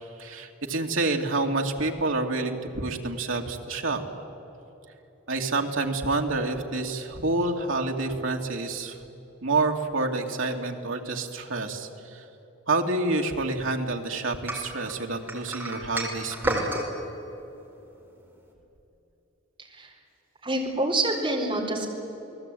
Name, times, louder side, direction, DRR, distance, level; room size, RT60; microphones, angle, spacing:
voice 1, 0.2-4.0 5.3-9.0 9.4-12.2 12.7-16.7, right 3 dB, 75° right, 3 dB, 2.5 m, -28 dB
sound 1, 14.5-16.9, right 1 dB, 10° right, 4.8 m, -30 dB
voice 2, 19.6-19.9 20.4-21.9, right 2 dB, 25° right, -1 dB, 4.4 m, -27 dB
29.5 x 20.0 x 9.2 m, 3.0 s
head